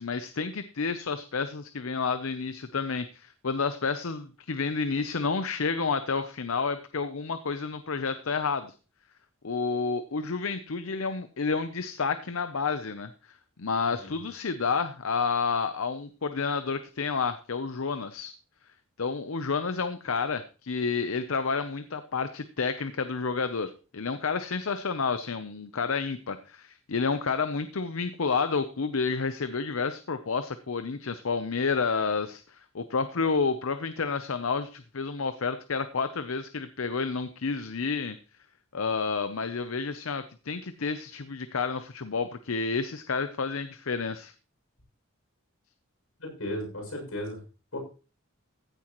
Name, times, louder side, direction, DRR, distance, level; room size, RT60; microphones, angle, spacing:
voice 1, 0.0-8.7 9.4-13.1 13.6-18.3 19.0-38.2 38.7-44.3, left 5 dB, 75° left, 11 dB, 0.7 m, -30 dB
voice 2, 13.9-14.2 46.2-47.4 47.7-47.8, left 1 dB, 90° left, 0 dB, 6.7 m, -35 dB
15.0 x 9.9 x 3.1 m, 0.34 s
head